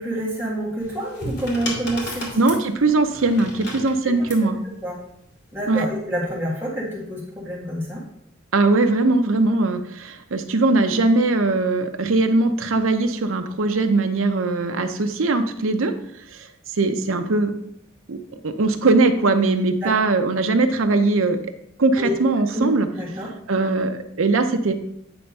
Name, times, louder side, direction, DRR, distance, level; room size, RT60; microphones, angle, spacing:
voice 1, 0.0-2.3 4.4-4.5 4.8-5.0 5.5-8.0 19.8-19.9 22.0-22.1 22.5-22.7 22.9-23.3, right 1 dB, 10° right, -5 dB, 1.7 m, -27 dB
sound 1, 0.8-4.5 5.5-5.9, left 1 dB, 55° left, 2.4 m, -33 dB
voice 2, 2.3-4.6 5.7-5.9 8.5-15.9 16.3-16.5 16.8-17.5 18.1-18.2 18.4-21.4 21.8-22.9 23.5-24.7, right 3 dB, 80° right, 6 dB, 0.7 m, -20 dB
9.1 x 3.4 x 5.4 m, 0.74 s
head